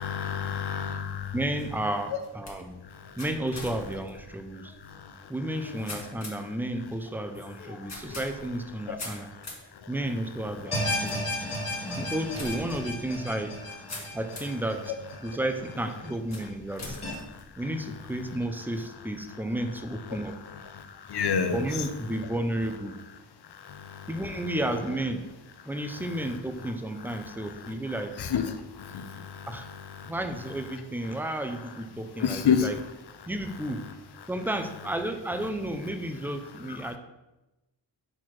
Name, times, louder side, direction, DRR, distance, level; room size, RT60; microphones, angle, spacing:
voice 1, 0.0-1.3 3.0-3.1 4.8-5.1 8.9-9.0 9.4-9.5 10.7-10.8 11.5-11.9 20.7-21.8 23.5-24.1 27.6-27.7 28.2-30.1 32.2-32.7 36.7-36.8, left 7 dB, 60° left, 9 dB, 0.6 m, -30 dB
sound 1, 1.2-14.7 15.2-15.7 16.3-18.1, left 2 dB, 35° left, 1.5 m, -45 dB
voice 2, 1.3-2.8 3.2-4.7 5.3-9.3 9.9-11.3 11.9-13.6 14.1-14.9 15.2-17.0 17.6-20.4 21.5-23.0 24.1-25.3 25.7-28.2 29.5-29.7 30.0-32.8 33.3-33.9 34.3-37.0, right 1 dB, 5° right, 6 dB, 0.4 m, -32 dB
sound 2, 10.7-15.9 16.3-16.4 17.0-17.1, left 1 dB, 15° left, 1.6 m, -34 dB
4.5 x 4.4 x 5.9 m, 1.0 s
wide cardioid pair, 125°, 45 cm